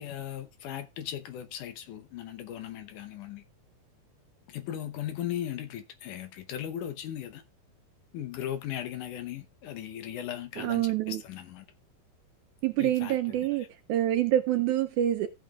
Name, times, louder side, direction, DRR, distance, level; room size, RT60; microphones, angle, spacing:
voice 1, 0.0-3.4 4.5-7.4 8.1-11.7 12.8-13.7, left 11 dB, 75° left, 2.1 m, -38 dB
voice 2, 10.6-11.2 12.6-15.3, right 12 dB, 75° right, 1.9 m, -26 dB
15.0 x 7.8 x 2.3 m
omnidirectional pair, 4.1 m